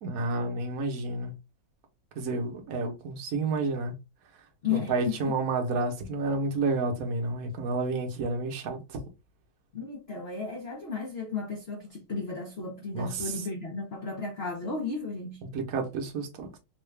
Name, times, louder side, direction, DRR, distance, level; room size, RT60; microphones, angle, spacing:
voice 1, 0.0-1.3 2.1-3.9 4.7-9.0 12.9-13.3 15.5-16.6, right 3 dB, 55° right, 1.1 m, -30 dB
voice 2, 4.6-5.3 9.7-15.4, left 5 dB, 90° left, 0.5 m, -34 dB
3.8 x 2.4 x 3.2 m
omnidirectional pair, 2.2 m